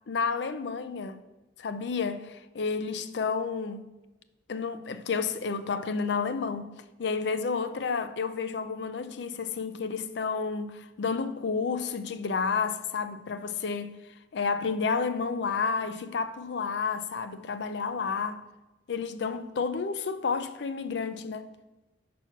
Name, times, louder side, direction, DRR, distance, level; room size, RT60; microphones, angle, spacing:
voice 1, 0.1-1.2 1.6-3.9 4.5-6.7 7.0-14.0 14.3-18.4 18.9-21.5, left 5 dB, 65° left, 0.4 m, -31 dB
5.7 x 4.3 x 5.8 m
head